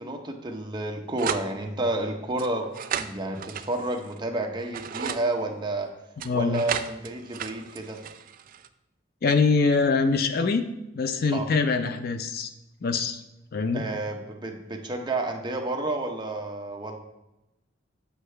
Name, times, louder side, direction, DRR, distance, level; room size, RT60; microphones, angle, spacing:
voice 1, 0.0-2.7 3.0-5.9 6.3-8.0 11.3-11.5 13.7-17.0, right 2 dB, 25° right, 3 dB, 0.7 m, -30 dB
sound 1, 1.2-1.5 2.4-4.2 4.6-5.2 6.2-8.7, right 8 dB, 45° right, 0.3 m, -34 dB
voice 2, 6.2-6.6 9.2-10.6 11.0-12.5 12.8-13.2 13.5-13.8, left 4 dB, 50° left, 9 dB, 0.4 m, -24 dB
7.9 x 5.6 x 3.2 m, 0.93 s
head